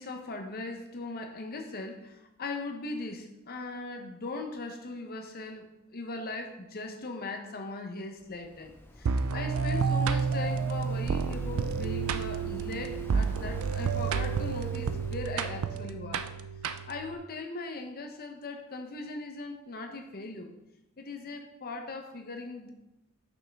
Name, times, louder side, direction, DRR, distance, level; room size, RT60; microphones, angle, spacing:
voice 1, 0.0-16.3 16.9-20.5 21.0-22.7, left 3 dB, 45° left, 4 dB, 0.8 m, -39 dB
Waves surf, 8.2-15.8, equal, 10° left, 0.5 m, -45 dB
sound 1, 9.1-17.2, right 6 dB, 65° right, 0.4 m, -30 dB
6.1 x 5.5 x 3.5 m, 0.89 s
head